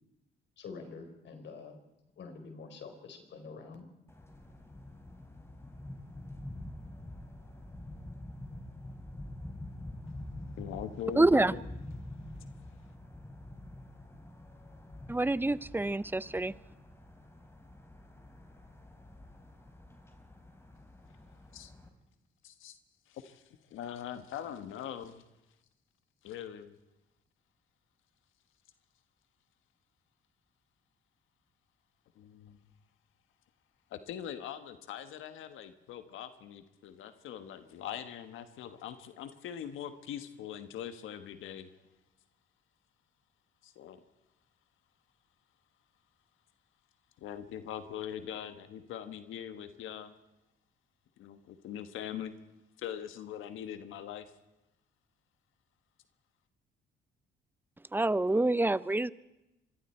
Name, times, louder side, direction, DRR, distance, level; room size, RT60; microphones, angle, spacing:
voice 1, 0.6-1.8 2.2-3.9, left 4 dB, 65° left, 4.2 m, -46 dB
sound 1, 4.1-21.9, left 1 dB, 15° left, 3.7 m, -47 dB
voice 2, 10.6-11.6 21.5-21.7 22.4-22.7 23.1-23.4 23.7-25.2 26.2-26.7 32.2-32.6 33.9-41.7 43.6-44.0 47.2-50.1 51.2-52.4 52.8-54.2, left 9 dB, 85° left, 1.4 m, -42 dB
voice 3, 11.2-11.5 15.1-16.5 57.9-59.1, right 2 dB, 10° right, 0.6 m, -27 dB
25.5 x 23.0 x 4.5 m
cardioid pair, 90°, 20 cm